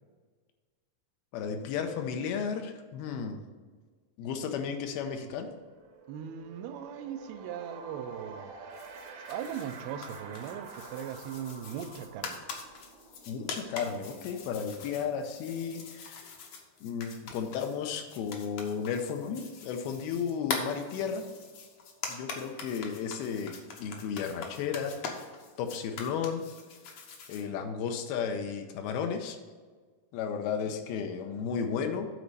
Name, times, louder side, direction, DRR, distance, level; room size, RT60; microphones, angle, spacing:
voice 1, 1.3-3.4 4.2-5.5 13.3-16.4 16.8-21.3 22.1-25.0 25.6-26.4 27.3-29.4 30.1-32.1, left 6 dB, 90° left, 5 dB, 2.6 m, -34 dB
sound 1, 5.1-15.6, right 4 dB, 70° right, 1.8 m, -49 dB
voice 2, 6.1-8.5 9.3-12.4, right 9 dB, 85° right, 9 dB, 2.5 m, -39 dB
sound 2, 8.7-27.4, left 4 dB, 70° left, 1.5 m, -43 dB
9.4 x 4.0 x 6.7 m, 1.5 s
omnidirectional pair, 4.5 m